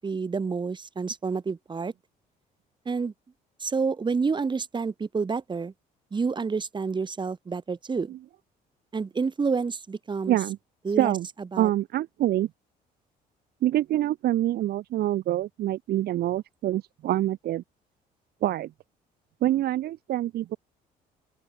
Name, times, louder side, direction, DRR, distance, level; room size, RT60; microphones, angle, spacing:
voice 1, 0.0-1.9 2.8-3.1 3.6-5.7 6.1-8.1 8.9-10.4 10.8-11.1 11.5-11.7, right 5 dB, 25° right, 6.3 m, -29 dB
voice 2, 10.3-10.6 11.0-11.3 11.6-12.5 13.6-17.6 18.4-18.7 19.4-20.6, right 13 dB, 70° right, 2.5 m, -26 dB
open air
cardioid pair, 110°, 17 cm